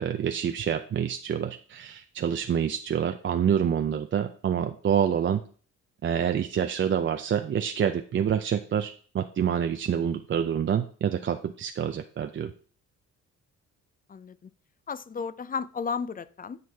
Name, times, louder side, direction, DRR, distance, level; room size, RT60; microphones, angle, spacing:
voice 1, 0.0-5.4 6.0-12.5, right 8 dB, 40° right, 7 dB, 0.6 m, -27 dB
voice 2, 14.1-14.5 14.9-16.6, left 5 dB, 30° left, 16 dB, 0.5 m, -33 dB
9.5 x 6.2 x 3.5 m, 0.42 s
cardioid pair, 90°, 30 cm